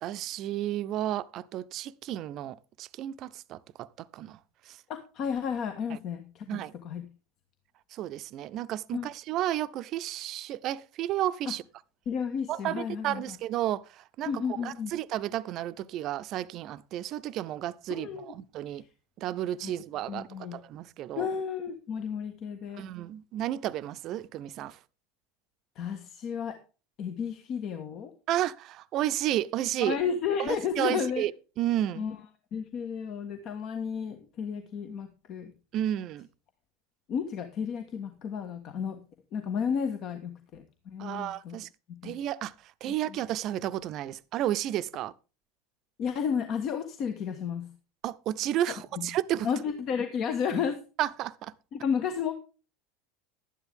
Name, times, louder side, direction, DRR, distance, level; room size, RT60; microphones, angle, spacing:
voice 1, 0.0-4.4 4.7-4.8 5.9-6.0 6.5-6.7 7.9-11.6 12.5-14.3 14.6-18.8 19.2-21.3 22.8-24.8 28.3-30.0 30.4-31.3 31.6-32.0 35.7-36.3 41.0-41.7 42.0-42.5 42.8-45.1 48.0-49.5 51.0-51.5, right 12 dB, 50° right, 0.7 m, -32 dB
voice 2, 4.9-7.0 8.9-9.1 11.4-11.5 12.1-13.4 14.3-14.9 17.9-18.3 18.7-18.8 19.6-19.7 20.1-20.5 21.1-22.8 25.7-26.6 27.0-28.1 29.8-31.2 31.9-32.2 32.5-35.5 37.1-39.0 39.3-41.6 42.0-42.1 43.1-43.2 46.0-47.7 49.0-49.1 49.4-50.8 51.7-52.3, left 7 dB, 45° left, 1.5 m, -32 dB
12.5 x 10.5 x 3.5 m
figure-of-eight pair, 75°, 0 cm